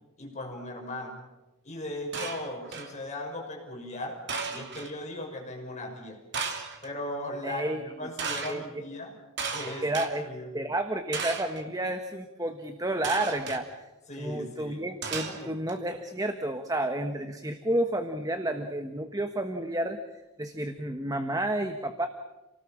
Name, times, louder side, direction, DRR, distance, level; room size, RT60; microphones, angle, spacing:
voice 1, 0.2-1.2 1.6-4.2 4.5-6.2 6.8-9.1 9.5-10.5 14.1-14.8 15.3-15.5, left 1 dB, 30° left, 1 dB, 6.2 m, -38 dB
sound 1, 2.1-3.0 4.3-4.9 6.3-6.9 8.2-8.6 9.4-10.1 11.1-11.6 13.0-13.6 15.0-15.7, right 5 dB, 50° right, 3.0 m, -34 dB
voice 2, 7.4-7.8 8.4-8.6 9.8-10.3 10.5-13.7 14.1-20.0 20.4-22.1, right 1 dB, 15° right, 6 dB, 1.3 m, -30 dB
29.0 x 19.0 x 7.4 m, 1.1 s
head